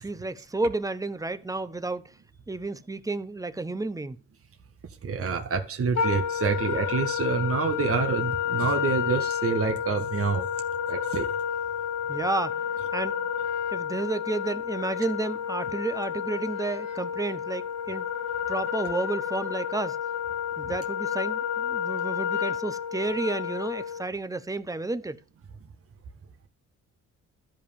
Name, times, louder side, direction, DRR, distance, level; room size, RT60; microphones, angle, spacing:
voice 1, 0.0-2.1 2.5-4.2 12.1-12.6 12.9-13.2 13.7-18.1 18.5-20.0 20.6-25.2, right 2 dB, 10° right, 1.0 m, -31 dB
voice 2, 5.0-10.5 10.9-11.3, right 5 dB, 50° right, 1.7 m, -27 dB
Wind instrument woodwind instrument, 5.9-24.1, left 8 dB, 65° left, 1.4 m, -30 dB
12.5 x 5.5 x 7.0 m
cardioid pair, 90°, 30 cm